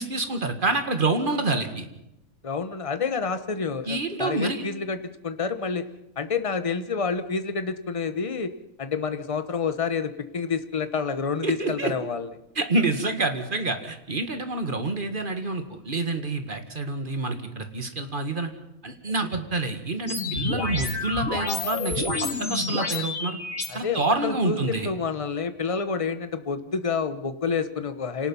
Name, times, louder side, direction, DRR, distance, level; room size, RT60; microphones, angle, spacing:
voice 1, 0.0-1.9 3.9-4.6 11.4-11.9 12.6-18.5 18.8-23.4 23.7-24.9, right 2 dB, 40° right, 7 dB, 2.0 m, -27 dB
voice 2, 2.4-5.8 6.2-8.5 8.8-12.3 23.7-24.6 24.8-28.3, left 5 dB, 25° left, 10 dB, 1.1 m, -28 dB
sound 1, 20.1-23.7, left 3 dB, 70° left, 2.5 m, -29 dB
27.0 x 18.5 x 5.6 m, 0.88 s
omnidirectional pair, 1.5 m